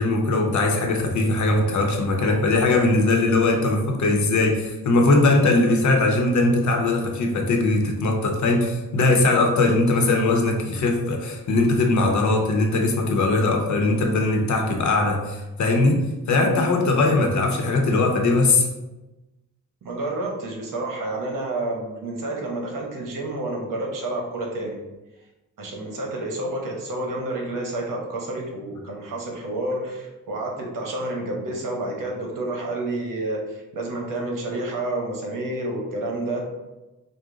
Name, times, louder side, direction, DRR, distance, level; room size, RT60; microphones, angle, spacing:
voice 1, 0.0-18.7, left 2 dB, 65° left, 2 dB, 0.8 m, -20 dB
voice 2, 19.8-24.8 25.6-36.4, right 2 dB, 80° right, 0 dB, 1.0 m, -29 dB
5.0 x 2.1 x 3.7 m, 1.1 s
wide cardioid pair, 125°, 32 cm